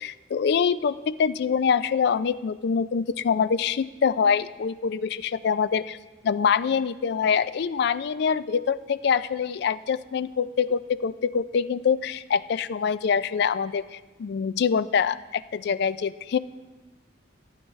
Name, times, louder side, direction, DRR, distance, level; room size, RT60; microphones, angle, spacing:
voice 1, 0.0-6.0 6.2-16.4, left 6 dB, 55° left, 16 dB, 0.3 m, -25 dB
15.0 x 9.3 x 3.2 m, 1.2 s
head